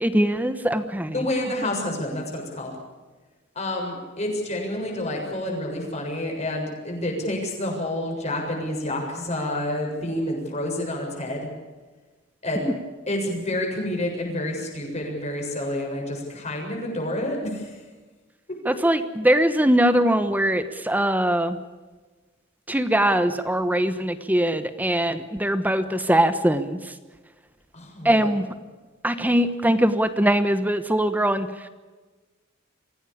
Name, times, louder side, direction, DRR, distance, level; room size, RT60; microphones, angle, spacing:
voice 1, 0.0-1.1 18.8-21.6 22.7-26.8 28.0-28.4 29.0-31.5, right 1 dB, 10° right, 11 dB, 1.1 m, -21 dB
voice 2, 1.1-2.7 3.6-11.5 12.4-12.7 13.1-17.8 27.7-28.3, left 1 dB, 35° left, 1 dB, 7.3 m, -29 dB
25.0 x 16.5 x 8.6 m, 1.3 s
head